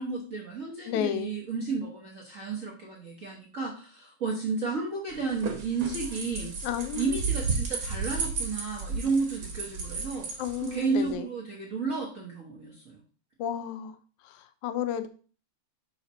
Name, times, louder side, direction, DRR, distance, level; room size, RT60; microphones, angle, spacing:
voice 1, 0.0-6.5 7.0-10.3 10.6-13.0, right 4 dB, 70° right, -3 dB, 0.7 m, -32 dB
voice 2, 0.9-1.3 6.6-7.2 10.4-11.3 13.4-14.0 14.2-15.1, left 10 dB, 85° left, 10 dB, 2.1 m, -32 dB
sound 1, 5.1-11.1, right 4 dB, 50° right, 1.9 m, -33 dB
5.8 x 4.9 x 4.1 m, 0.39 s
omnidirectional pair, 3.4 m